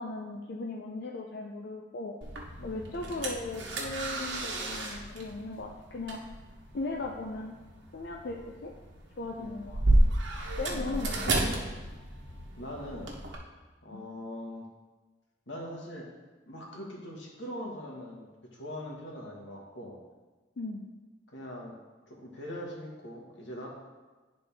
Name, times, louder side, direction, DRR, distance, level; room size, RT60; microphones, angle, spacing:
voice 1, 0.0-2.2 2.6-6.2 6.7-7.6 7.9-8.7 9.2-9.8 10.6-11.4 13.9-14.0 20.6-20.9, left 3 dB, 60° left, 0 dB, 0.5 m, -37 dB
sound 1, 2.2-13.3, right 1 dB, 85° right, 1.1 m, -32 dB
voice 2, 10.7-11.2 12.6-13.1 13.8-14.6 15.5-16.1 16.5-20.0 21.3-21.7 22.1-23.7, left 1 dB, 85° left, -2 dB, 1.6 m, -41 dB
10.5 x 4.0 x 3.5 m, 1.3 s
head